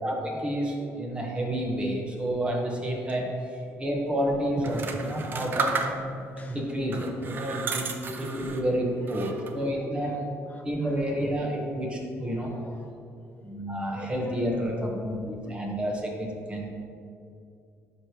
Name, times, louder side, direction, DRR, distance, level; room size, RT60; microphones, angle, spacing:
voice 1, 0.0-6.2 6.5-7.9 8.2-10.1 10.6-12.5 13.4-16.7, equal, 20° right, -1 dB, 1.4 m, -30 dB
sound 1, 4.6-6.3 6.9-8.7 9.1-9.7, right 4 dB, 40° right, 0.7 m, -32 dB
voice 2, 9.3-11.4 12.2-13.0 13.2-13.5 13.9-14.4 15.4-15.8 16.8-16.9, left 4 dB, 30° left, 5 dB, 0.4 m, -45 dB
10.5 x 5.1 x 3.2 m, 2.6 s
cardioid pair, 120°, 5 cm